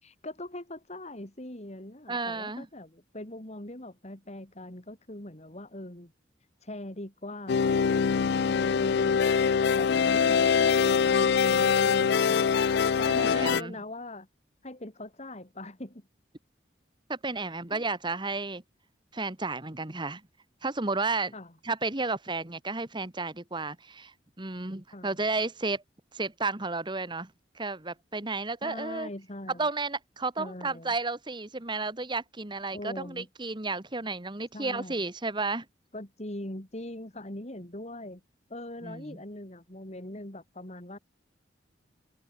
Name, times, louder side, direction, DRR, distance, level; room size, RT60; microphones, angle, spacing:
voice 1, 0.0-6.1 6.6-9.2 9.7-12.4 13.0-14.3 14.6-16.1 17.3-17.8 21.3-21.5 24.9-25.2 28.6-29.7 30.4-30.9 32.7-33.3 34.5-35.1 35.9-38.2 38.5-41.0, left 1 dB, 35° left, 3.3 m, -41 dB
voice 2, 2.1-2.7 13.1-13.7 17.1-18.6 19.1-20.2 20.6-21.3 21.6-25.8 26.1-27.3 27.5-29.1 29.6-35.6 38.8-39.2, right 3 dB, 25° right, 1.6 m, -32 dB
sound 1, 7.5-13.6, left 6 dB, 60° left, 0.4 m, -23 dB
head